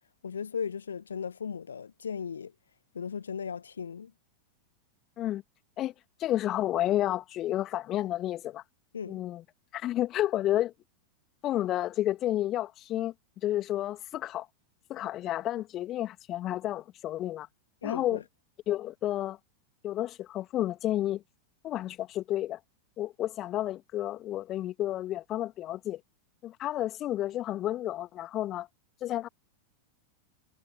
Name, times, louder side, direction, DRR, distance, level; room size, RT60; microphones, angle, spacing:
voice 1, 0.2-2.5 2.9-4.1 8.9-9.2 17.8-18.2, left 6 dB, 70° left, 1.0 m, -36 dB
voice 2, 6.2-8.6 9.1-9.4 9.7-10.7 11.4-13.1 13.4-14.5 14.9-17.5 17.8-18.2 18.7-19.4 19.8-21.2 21.6-22.6 23.0-26.0 26.4-28.7 29.0-29.3, left 13 dB, 35° left, 2.3 m, -31 dB
figure-of-eight pair, 90°, 0 cm